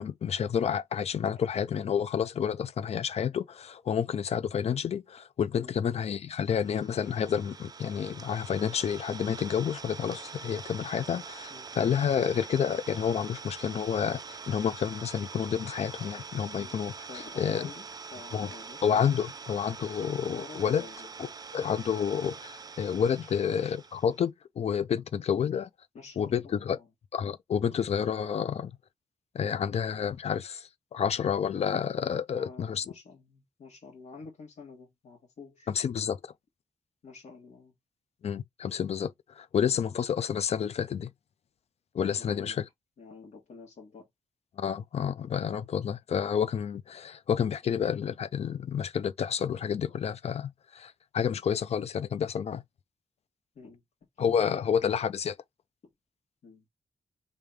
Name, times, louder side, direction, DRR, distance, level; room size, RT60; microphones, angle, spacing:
voice 1, 0.0-16.9 17.4-17.7 18.3-18.5 18.8-20.8 21.2-25.7 26.2-26.8 27.1-28.7 29.3-32.8 35.7-36.2 38.2-41.1 41.9-42.6 44.6-52.6 54.2-55.3, left 8 dB, 60° left, 0.4 m, -29 dB
Idling, 6.5-24.2, right 5 dB, 30° right, 0.4 m, -44 dB
voice 2, 17.1-18.8 20.2-21.1 25.9-26.9 32.3-35.7 37.0-37.7 39.7-40.0 42.2-42.6 43.0-44.1 53.6-53.8 54.2-54.9 56.4-56.7, left 4 dB, 80° left, 1.6 m, -48 dB
3.4 x 2.8 x 3.5 m
wide cardioid pair, 170°, 12 cm